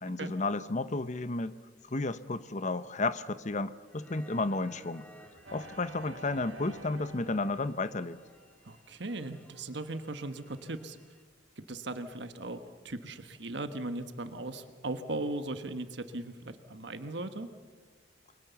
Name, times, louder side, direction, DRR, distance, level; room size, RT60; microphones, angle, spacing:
voice 1, 0.0-1.6 1.8-5.1 5.5-8.2, left 2 dB, 40° left, 14 dB, 0.9 m, -32 dB
sound 1, 3.9-11.2, equal, 10° left, 2.1 m, -57 dB
sound 2, 5.4-9.0, right 2 dB, 80° right, 2.5 m, -50 dB
voice 2, 8.6-11.0 11.6-17.5, right 2 dB, 60° right, 9 dB, 1.4 m, -38 dB
29.5 x 23.0 x 7.1 m, 1.4 s
head